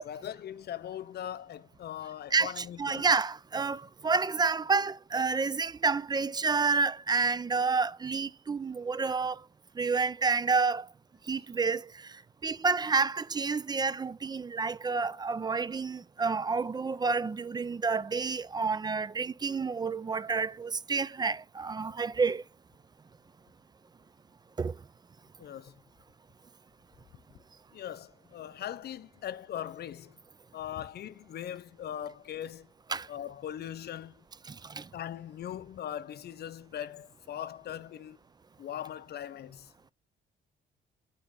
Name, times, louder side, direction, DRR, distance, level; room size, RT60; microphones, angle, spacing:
voice 1, 0.0-3.1 25.4-25.8 27.7-30.2 30.5-32.7 33.1-34.2 34.9-38.2 38.6-39.7, left 10 dB, 55° left, 0.6 m, -40 dB
voice 2, 2.3-9.4 9.8-10.9 11.3-12.2 12.4-22.4 24.6-24.7 32.9-33.1 34.5-34.9, right 4 dB, 20° right, 0.4 m, -29 dB
8.5 x 4.1 x 5.1 m
cardioid pair, 90°, 20 cm